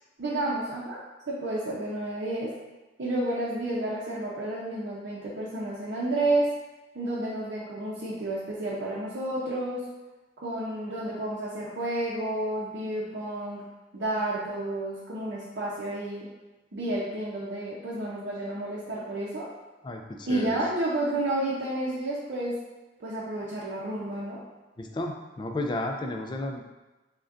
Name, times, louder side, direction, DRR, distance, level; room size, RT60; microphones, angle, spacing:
voice 1, 0.2-1.0 1.3-2.5 3.0-6.5 6.9-9.9 10.4-13.7 13.9-16.3 16.7-19.5 20.3-22.6 23.0-24.4, right 1 dB, 65° right, -8 dB, 0.7 m, -30 dB
voice 2, 19.8-20.6 24.8-26.7, left 1 dB, 25° left, 3 dB, 0.3 m, -33 dB
6.1 x 2.2 x 2.5 m, 1.1 s
head